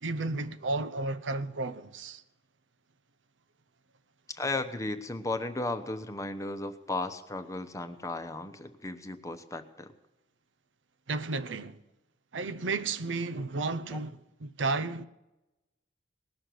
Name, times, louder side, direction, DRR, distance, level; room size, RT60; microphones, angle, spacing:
voice 1, 0.0-2.2 11.1-11.8 12.3-15.1, right 3 dB, 80° right, 0.7 m, -33 dB
voice 2, 4.3-9.9 13.9-14.0, left 2 dB, 15° left, 0.9 m, -35 dB
19.5 x 6.5 x 9.2 m
head